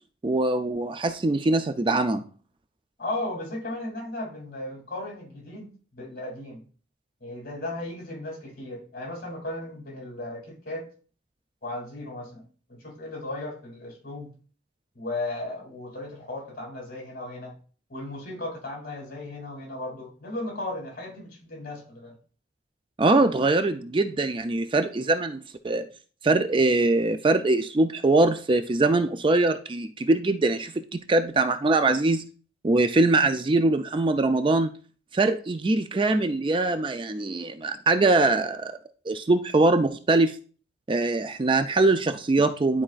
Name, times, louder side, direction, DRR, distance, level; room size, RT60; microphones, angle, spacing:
voice 1, 0.2-2.2 23.0-25.8 26.2-32.2 32.6-34.7 35.1-38.7 39.1-40.3 40.9-42.8, right 2 dB, 25° right, 8 dB, 0.4 m, -22 dB
voice 2, 3.0-6.6 7.2-10.9 11.6-12.4 12.7-14.3 14.9-17.5 17.9-22.2, left 2 dB, 50° left, 0 dB, 2.8 m, -36 dB
11.0 x 4.2 x 2.4 m, 0.40 s
head